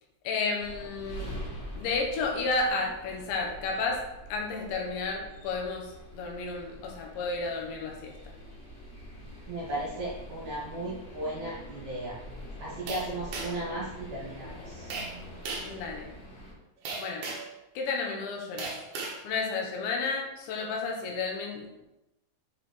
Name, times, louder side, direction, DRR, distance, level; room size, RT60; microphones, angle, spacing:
voice 1, 0.2-1.3 1.7-4.0 4.3-8.2 15.6-16.1 17.0-17.2 17.7-18.7 19.2-21.7, left 4 dB, 75° left, 0 dB, 3.3 m, -32 dB
sound 1, 0.6-16.5, equal, 40° left, 1.6 m, -45 dB
voice 2, 9.5-12.2 12.6-14.9, right 1 dB, 45° right, -8 dB, 2.6 m, -36 dB
sound 2, 12.9-13.7 14.9-15.1 15.4-15.7 16.8-17.5 18.6-19.2, right 3 dB, 70° right, 1.9 m, -36 dB
7.5 x 5.0 x 4.4 m, 0.95 s
omnidirectional pair, 5.4 m